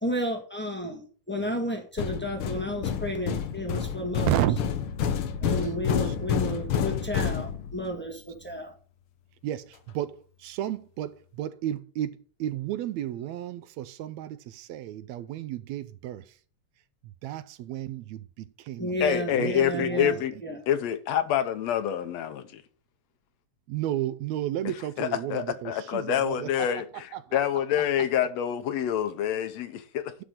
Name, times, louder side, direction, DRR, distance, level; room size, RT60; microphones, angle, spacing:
voice 1, 0.0-4.3 5.4-8.7 18.8-20.6, equal, 15° left, 0.3 m, -32 dB
sound 1, 2.0-8.0, left 8 dB, 90° left, 1.1 m, -29 dB
voice 2, 4.3-4.7 5.4-6.2 9.4-16.4 17.0-20.2 23.7-26.9 27.1-27.4, right 12 dB, 75° right, 1.8 m, -33 dB
voice 3, 19.0-20.3 20.7-22.6 25.0-26.9 27.3-30.1, left 10 dB, 70° left, 1.9 m, -27 dB
11.5 x 4.1 x 7.5 m
omnidirectional pair, 3.5 m